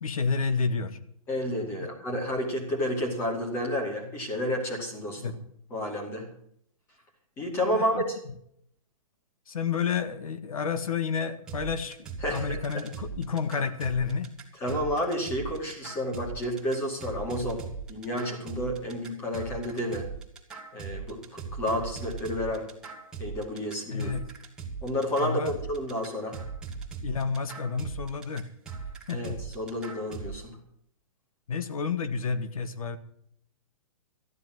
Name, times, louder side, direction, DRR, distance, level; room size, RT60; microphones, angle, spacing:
voice 1, 0.0-1.0 1.8-1.9 5.2-5.4 7.7-8.0 9.5-14.3 23.9-24.2 25.2-25.5 27.0-28.5 29.1-29.4 31.5-33.0, left 5 dB, 80° left, 11 dB, 1.6 m, -30 dB
voice 2, 1.3-5.2 5.7-6.3 7.4-8.2 12.2-12.8 14.6-17.6 17.9-20.1 20.7-22.7 23.2-24.1 24.8-26.4 29.1-30.6, equal, 15° left, 2 dB, 2.4 m, -30 dB
sound 1, 11.5-30.4, right 5 dB, 5° right, 1.8 m, -39 dB
14.0 x 11.0 x 6.2 m, 0.69 s
hypercardioid pair, 175°, 18 cm